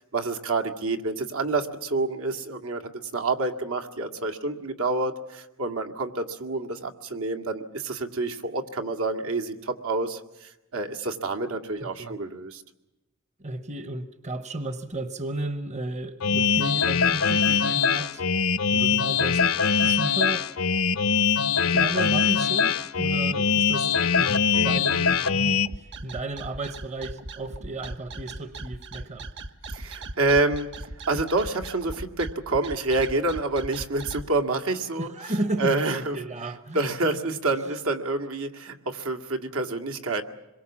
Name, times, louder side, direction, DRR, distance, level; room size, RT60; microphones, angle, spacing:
voice 1, 0.1-12.6 29.7-30.7 31.1-35.1 35.6-36.2 36.7-40.2, right 2 dB, 80° right, 4 dB, 2.1 m, -28 dB
voice 2, 11.8-12.2 13.4-18.2 18.7-19.4 19.8-20.5 21.7-29.3 35.0-36.8, right 2 dB, 35° right, 11 dB, 1.0 m, -33 dB
sound 1, 16.2-25.7, left 6 dB, 80° left, 0.9 m, -22 dB
sound 2, 25.6-34.2, right 2 dB, 60° right, 1.5 m, -38 dB
26.5 x 22.5 x 7.3 m, 0.96 s
head